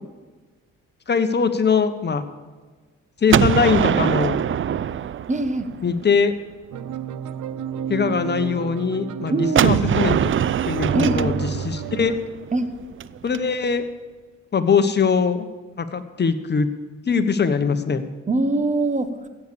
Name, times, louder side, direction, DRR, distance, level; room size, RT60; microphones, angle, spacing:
voice 1, 1.1-2.2 3.2-4.4 5.8-6.3 7.9-10.3 10.7-12.1 13.2-13.9 14.5-15.5 15.8-16.7 17.0-18.0, left 5 dB, 35° left, 9 dB, 1.2 m, -21 dB
Gunshot gunfire, 3.3-6.1 9.6-13.4, right 9 dB, 45° right, 0.5 m, -23 dB
voice 2, 5.3-5.7 9.3-9.7 10.9-11.3 12.5-12.7 18.3-19.3, right 2 dB, 25° right, 11 dB, 1.3 m, -22 dB
sound 1, 6.7-12.2, right 8 dB, 75° right, 0.8 m, -31 dB
15.0 x 8.5 x 6.9 m, 1.4 s
cardioid pair, 90°, 30 cm